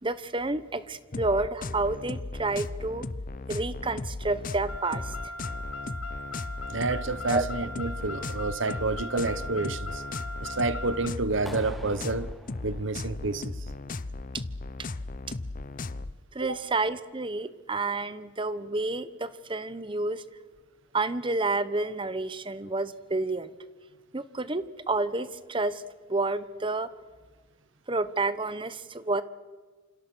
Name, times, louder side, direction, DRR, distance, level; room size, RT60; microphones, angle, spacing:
voice 1, 0.0-3.0 3.5-5.2 7.3-7.5 14.3-14.4 16.3-20.2 20.9-23.5 24.1-25.8 26.1-26.9 27.9-29.2, right 2 dB, 25° right, 1.0 m, -29 dB
sound 1, 1.1-16.1, left 2 dB, 40° left, 0.8 m, -36 dB
Car, 4.7-11.1, left 2 dB, 75° left, 1.8 m, -39 dB
voice 2, 6.7-10.0 10.4-12.3 12.6-13.6 16.4-16.7, right 3 dB, 60° right, 1.1 m, -29 dB
Clapping, 11.5-13.5, left 1 dB, ahead, 1.9 m, -46 dB
28.5 x 26.0 x 6.3 m
head